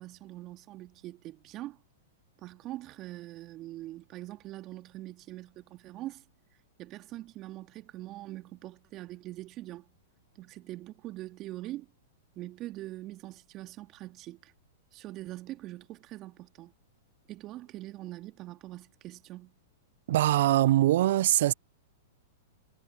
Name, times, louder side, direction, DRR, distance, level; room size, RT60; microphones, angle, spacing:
voice 1, 0.0-1.8 2.4-6.2 6.8-9.9 10.3-11.9 12.4-14.5 14.9-16.7 17.3-19.5, right 16 dB, 35° right, 2.7 m, -43 dB
voice 2, 20.1-21.5, right 14 dB, 60° right, 0.5 m, -23 dB
hypercardioid pair, 110°, 0 cm